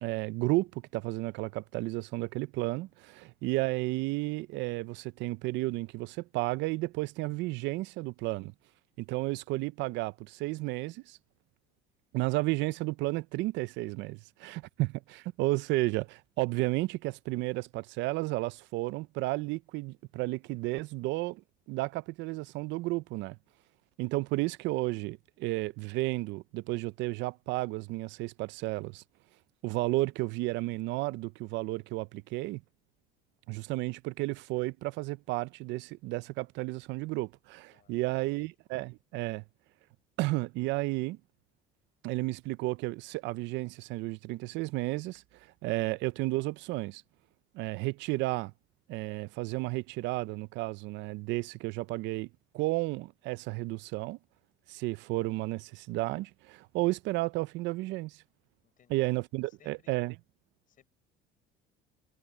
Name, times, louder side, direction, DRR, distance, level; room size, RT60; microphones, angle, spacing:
voice 1, 0.0-8.5 9.0-11.2 12.1-23.4 24.0-29.0 29.6-32.6 33.5-39.4 40.2-41.2 42.0-47.0 47.5-48.5 48.9-52.3 52.5-54.2 54.7-58.2 58.9-60.1, right 20 dB, 70° right, 0.5 m, -32 dB
voice 2, 37.7-38.5 58.6-59.1 59.6-59.9 60.7-60.9, left 10 dB, 45° left, 6.8 m, -65 dB
cardioid pair, 130°, 19 cm